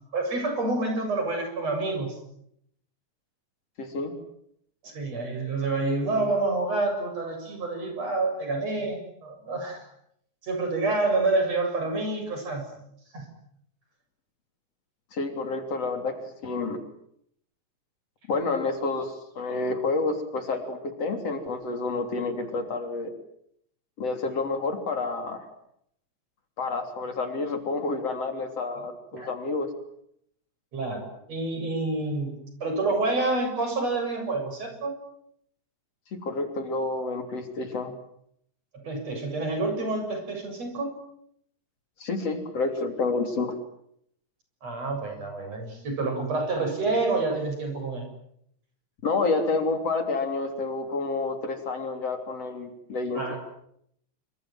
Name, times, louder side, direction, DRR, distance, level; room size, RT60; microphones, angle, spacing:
voice 1, 0.1-2.2 4.8-9.9 10.4-12.7 13.1-13.3 28.8-28.9 29.1-29.3 30.7-32.3 32.6-35.0 38.8-41.0 44.6-48.0 53.1-53.4, right 3 dB, 60° right, 5 dB, 8.6 m, -28 dB
voice 2, 3.8-4.1 15.1-16.8 18.3-23.1 24.0-25.5 26.6-29.7 36.1-37.9 42.0-43.5 49.0-53.3, left 3 dB, 55° left, 6 dB, 4.3 m, -29 dB
27.0 x 25.5 x 7.8 m, 0.72 s
omnidirectional pair, 3.3 m